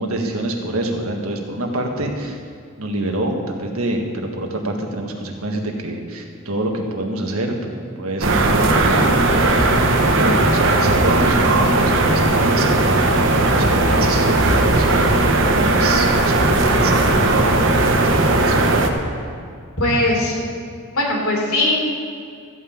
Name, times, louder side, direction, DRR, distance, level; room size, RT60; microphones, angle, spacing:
voice 1, 0.0-2.4 2.8-9.2 10.0-13.0 13.5-14.4 14.8-17.7 17.9-18.6, right 1 dB, 80° right, 2 dB, 1.6 m, -26 dB
sound 1, 8.2-18.9, right 2 dB, 60° right, 1.1 m, -17 dB
voice 2, 19.8-20.4 20.9-21.9, left 1 dB, 75° left, -2 dB, 3.3 m, -19 dB
14.0 x 5.7 x 8.6 m, 2.3 s
head